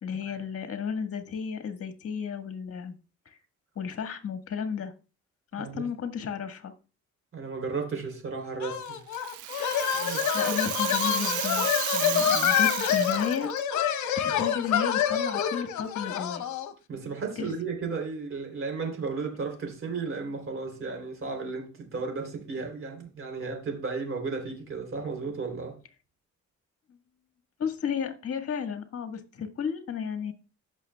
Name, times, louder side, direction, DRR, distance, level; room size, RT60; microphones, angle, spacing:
voice 1, 0.0-2.9 3.2-3.4 3.7-4.9 5.5-6.7 10.3-13.5 14.1-16.4 17.4-17.5 27.6-30.3, left 7 dB, 50° left, 1.6 m, -33 dB
voice 2, 7.3-9.0 9.9-10.3 16.9-25.8, right 4 dB, 45° right, 3.3 m, -34 dB
sound 1, 8.6-16.7, left 9 dB, 70° left, 0.9 m, -27 dB
Rattle (instrument), 8.9-13.6, right 15 dB, 75° right, 0.5 m, -33 dB
15.5 x 6.2 x 2.3 m
cardioid pair, 90°, 30 cm